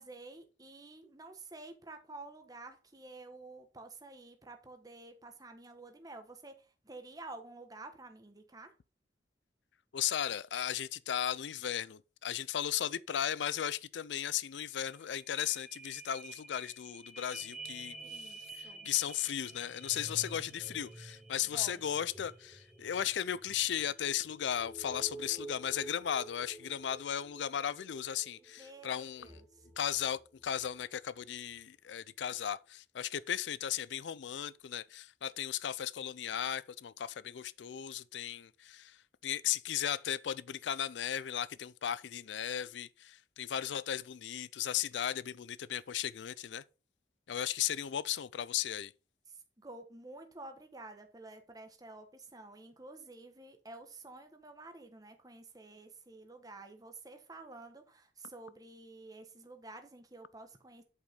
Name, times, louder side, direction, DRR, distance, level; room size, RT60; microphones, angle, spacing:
voice 1, 0.0-8.7 18.0-18.9 21.5-21.9 28.4-29.7 49.3-60.8, right 2 dB, 20° right, 1.3 m, -50 dB
voice 2, 9.9-29.4 29.8-46.6 47.3-48.9, left 10 dB, 85° left, 0.4 m, -36 dB
sound 1, 14.5-14.6 14.8-30.8 31.3-31.4, right 2 dB, 5° right, 2.4 m, -50 dB
8.3 x 5.2 x 5.2 m
head